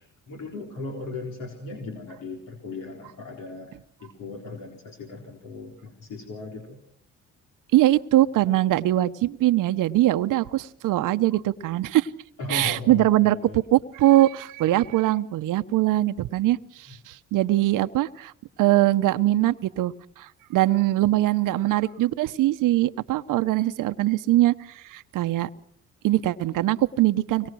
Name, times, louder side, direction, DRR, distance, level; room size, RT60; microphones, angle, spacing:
voice 1, 0.0-6.8 12.4-13.6, left 3 dB, 75° left, 1 dB, 4.3 m, -37 dB
voice 2, 7.7-12.1 12.5-18.3 18.6-25.5 26.0-27.5, right 15 dB, 75° right, 11 dB, 0.9 m, -22 dB
24.5 x 21.5 x 6.2 m, 0.64 s
supercardioid pair, 70°, 32 cm